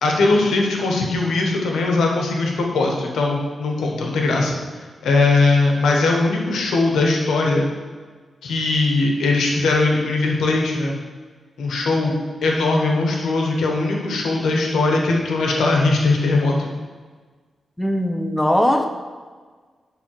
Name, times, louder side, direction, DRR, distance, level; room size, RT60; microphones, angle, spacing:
voice 1, 0.0-4.5 5.0-7.7 8.4-11.0 11.6-12.1 12.4-16.7, left 3 dB, 90° left, 0 dB, 1.3 m, -20 dB
voice 2, 17.8-18.9, equal, 10° left, 5 dB, 0.7 m, -19 dB
10.0 x 3.7 x 4.8 m, 1.5 s
cardioid pair, 75°, 0 cm